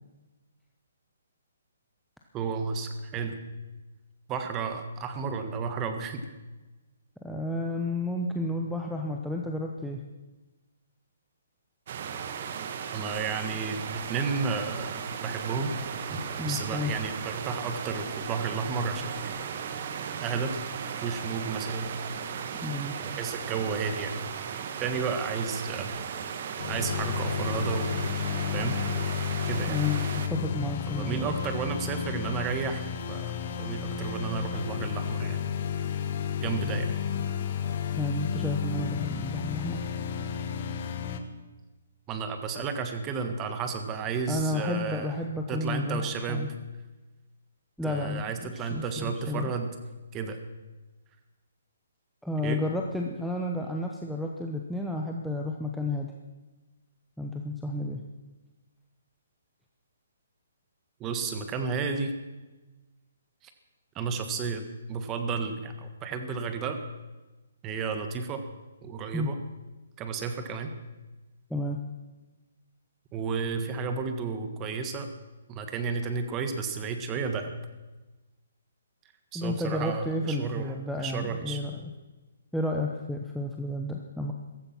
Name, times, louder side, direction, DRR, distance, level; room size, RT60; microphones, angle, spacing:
voice 1, 2.3-3.4 4.3-6.2 12.9-15.7 16.1-19.4 20.2-20.6 21.0-21.9 23.0-24.2 24.8-25.9 26.7-27.9 28.5-28.8 29.4-29.7 30.9-33.3 33.6-35.5 36.4-36.9 42.1-45.1 45.5-46.5 47.8-49.7 50.1-50.4 52.4-52.6 61.0-62.1 63.9-66.8 67.6-68.4 68.8-69.4 70.0-70.7 73.1-75.1 75.5-77.5 79.3-80.7 81.0-81.6, right 5 dB, 20° right, 7 dB, 1.7 m, -32 dB
voice 2, 7.2-10.0 16.4-16.9 22.6-22.9 29.7-31.3 38.0-39.9 44.3-46.5 47.8-49.5 52.2-56.1 57.2-58.0 69.1-69.3 71.5-71.8 79.3-81.8 82.5-84.3, left 2 dB, ahead, -1 dB, 1.0 m, -31 dB
sound 1, 11.9-30.3, right 7 dB, 45° right, 1.5 m, -36 dB
sound 2, 26.6-41.2, left 7 dB, 45° left, 1.4 m, -32 dB
15.5 x 15.0 x 6.1 m, 1.2 s
hypercardioid pair, 160°, 0 cm